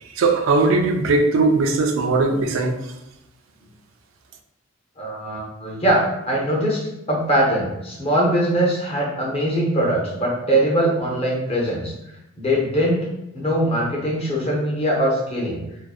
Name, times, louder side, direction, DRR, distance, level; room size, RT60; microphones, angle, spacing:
voice 1, 0.2-2.8, right 3 dB, 70° right, 5 dB, 0.3 m, -19 dB
voice 2, 5.0-6.8 7.1-11.9 12.4-13.1 13.3-15.6, right 1 dB, 30° left, -3 dB, 0.6 m, -21 dB
2.5 x 2.1 x 2.3 m, 0.90 s
head